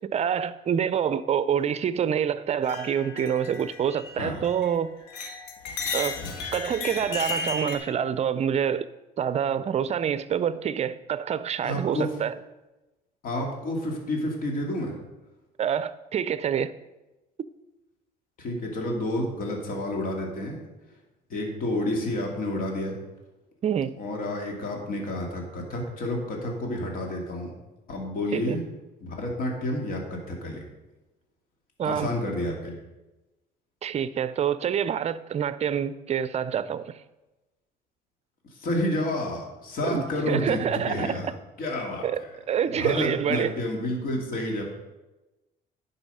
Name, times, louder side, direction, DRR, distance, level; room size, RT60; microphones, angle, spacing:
voice 1, 0.1-4.9 5.9-6.2 6.5-8.9 9.2-12.3 15.6-16.7 23.6-23.9 28.3-28.6 31.8-32.1 33.8-36.9 39.9-41.2 42.0-42.2 42.5-43.5, right 8 dB, 40° right, 0.5 m, -26 dB
sound 1, 2.6-4.8 5.1-7.8, left 4 dB, 80° left, 1.4 m, -34 dB
voice 2, 11.6-12.1 13.2-14.9 18.4-20.6 21.3-23.0 24.0-27.5 27.9-28.6 29.0-30.6 31.8-32.8 38.6-42.3 42.7-44.6, left 1 dB, 55° left, 2.4 m, -30 dB
10.5 x 5.5 x 5.6 m
cardioid pair, 110°, 17 cm